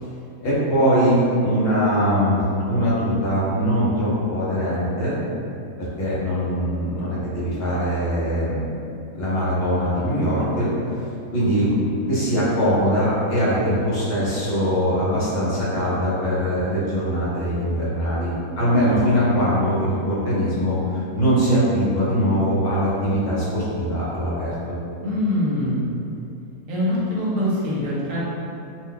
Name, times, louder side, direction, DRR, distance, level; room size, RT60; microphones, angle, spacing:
voice 1, 0.4-5.2 5.8-8.6 9.1-10.7 11.3-24.8, equal, 45° left, -8 dB, 1.0 m, -22 dB
voice 2, 25.0-25.9 26.7-28.2, left 1 dB, 65° right, -7 dB, 1.1 m, -23 dB
2.6 x 2.2 x 3.7 m, 2.6 s
omnidirectional pair, 1.6 m